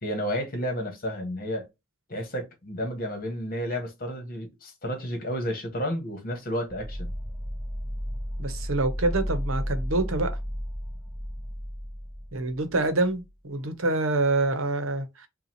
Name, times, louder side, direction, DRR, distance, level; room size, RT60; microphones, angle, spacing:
voice 1, 0.0-1.7 2.1-7.1, equal, 45° left, 1.5 m, -31 dB
sound 1, 6.7-13.2, equal, 5° left, 0.8 m, -33 dB
voice 2, 8.4-10.3 12.3-15.3, right 2 dB, 70° right, 0.9 m, -26 dB
5.4 x 2.4 x 2.9 m
head